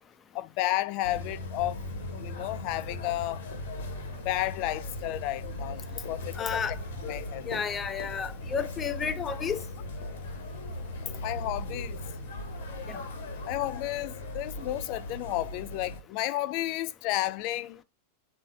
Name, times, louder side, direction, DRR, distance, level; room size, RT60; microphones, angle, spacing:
voice 1, 0.3-1.8 2.2-3.4 4.2-6.6 7.0-7.5 11.2-12.0 13.5-17.8, left 16 dB, 45° left, 0.4 m, -32 dB
sound 1, 1.0-16.0, left 1 dB, 65° left, 1.8 m, -38 dB
voice 2, 6.3-6.8 7.5-9.6 12.9-13.0, left 7 dB, 25° left, 0.8 m, -32 dB
6.1 x 3.8 x 4.6 m
figure-of-eight pair, 90°, 0 cm